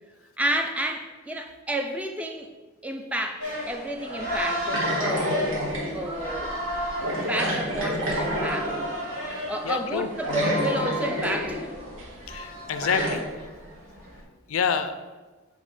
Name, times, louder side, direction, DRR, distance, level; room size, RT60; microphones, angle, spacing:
voice 1, 0.4-2.5 2.8-5.6 5.9-6.6 7.2-8.8 9.2-11.8, right 1 dB, 5° right, 4 dB, 0.4 m, -31 dB
sound 1, 3.4-14.2, equal, 35° right, 1.8 m, -33 dB
sound 2, 4.7-6.0 7.0-8.9 9.9-10.0 10.2-11.6 12.0-12.1 12.8-13.2, equal, 70° right, 1.6 m, -28 dB
voice 2, 9.4-10.1 12.3-13.2 14.5-15.0, left 6 dB, 85° left, 10 dB, 0.4 m, -28 dB
7.5 x 3.4 x 3.7 m, 1.2 s
head